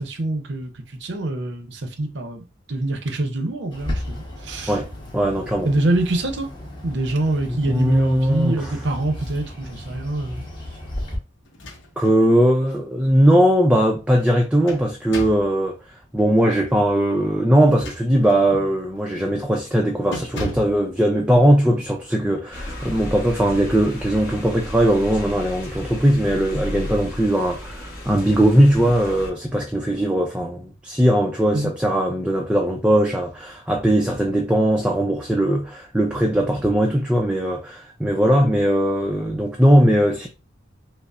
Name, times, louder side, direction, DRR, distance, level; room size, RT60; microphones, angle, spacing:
voice 1, 0.0-4.8 5.6-6.5 6.8-10.4 31.5-31.7, right 2 dB, 60° right, 0.7 m, -25 dB
Bird, 3.7-11.2, left 1 dB, 25° left, 1.0 m, -34 dB
voice 2, 5.1-5.7 7.5-8.7 12.0-15.8 16.1-40.3, equal, 5° right, 0.4 m, -19 dB
sound 1, 11.5-12.2 12.6-12.7 14.2-15.5 17.6-18.5 19.0-19.2 19.5-19.7 20.1-20.8, left 1 dB, 65° left, 0.8 m, -35 dB
sound 2, 22.5-29.3, left 1 dB, 50° left, 1.2 m, -34 dB
5.3 x 2.0 x 2.4 m
head